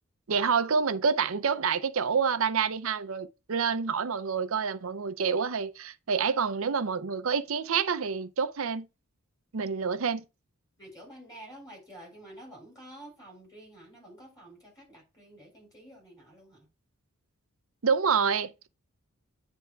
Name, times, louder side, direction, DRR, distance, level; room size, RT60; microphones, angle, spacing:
voice 1, 0.3-8.9 9.5-10.2 17.8-18.7, right 6 dB, 65° right, 0.6 m, -28 dB
voice 2, 10.8-16.7, right 1 dB, 15° left, 3.5 m, -49 dB
9.4 x 3.5 x 4.5 m
head